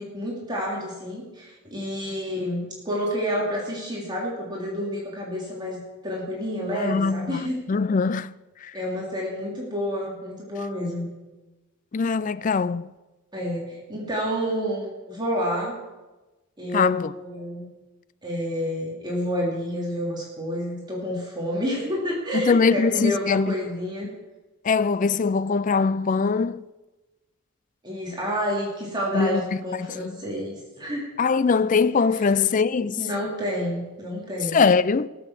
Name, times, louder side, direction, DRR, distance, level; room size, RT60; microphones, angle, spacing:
voice 1, 0.0-7.6 8.7-11.1 13.3-15.8 16.6-17.7 18.2-24.1 27.8-31.1 32.2-32.3 33.0-34.6, equal, 20° right, 3.1 m, -29 dB
voice 2, 6.8-7.4 7.7-8.3 11.9-12.9 16.7-17.1 22.3-23.5 24.6-26.6 29.1-29.4 29.8-30.1 31.2-33.0 34.5-35.1, left 5 dB, 35° left, 0.4 m, -22 dB
18.5 x 7.1 x 7.4 m
head